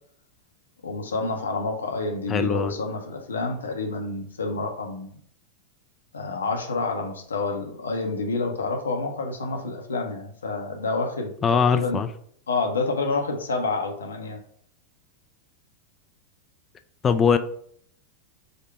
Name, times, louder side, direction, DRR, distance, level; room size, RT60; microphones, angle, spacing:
voice 1, 0.8-5.1 6.1-12.0 12.5-14.4, left 3 dB, 70° left, 3 dB, 0.7 m, -28 dB
voice 2, 2.3-2.7 11.4-12.1 17.0-17.4, left 6 dB, 20° left, 9 dB, 0.3 m, -21 dB
5.1 x 2.1 x 4.6 m, 0.64 s
figure-of-eight pair, 90°, 0 cm